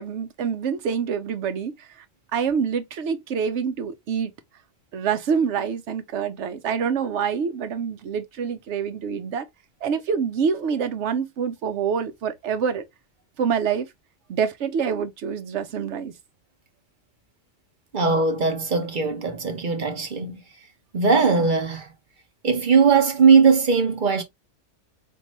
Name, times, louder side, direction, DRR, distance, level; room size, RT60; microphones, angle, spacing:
voice 1, 0.0-1.9 2.3-4.3 4.9-9.4 9.8-12.8 13.4-13.9 14.3-16.1, right 6 dB, 70° right, 0.9 m, -26 dB
voice 2, 17.9-20.4 20.9-21.9 22.4-24.2, right 5 dB, 45° right, 0.9 m, -19 dB
3.8 x 2.6 x 2.8 m
omnidirectional pair, 1.3 m